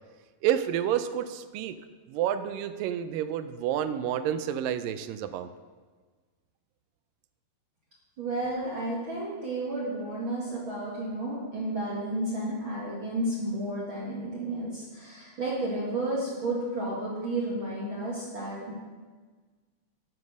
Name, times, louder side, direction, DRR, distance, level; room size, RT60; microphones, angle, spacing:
voice 1, 0.4-1.8 2.1-5.5, right 10 dB, 80° right, 11 dB, 2.1 m, -29 dB
voice 2, 8.2-18.7, right 1 dB, 45° right, -6 dB, 1.9 m, -32 dB
9.4 x 7.7 x 6.2 m, 1.4 s
omnidirectional pair, 4.2 m